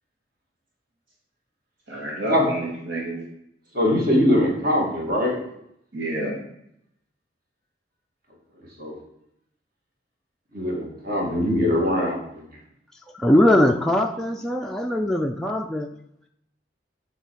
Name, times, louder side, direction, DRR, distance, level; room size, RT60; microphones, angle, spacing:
voice 1, 1.9-3.2 5.9-6.3, right 1 dB, 80° right, -3 dB, 2.0 m, -29 dB
voice 2, 3.7-5.4 8.8-9.0 10.5-12.4, left 1 dB, 50° right, -1 dB, 2.3 m, -22 dB
voice 3, 13.1-15.9, left 1 dB, ahead, 1 dB, 0.4 m, -21 dB
8.1 x 4.2 x 6.2 m, 0.75 s
head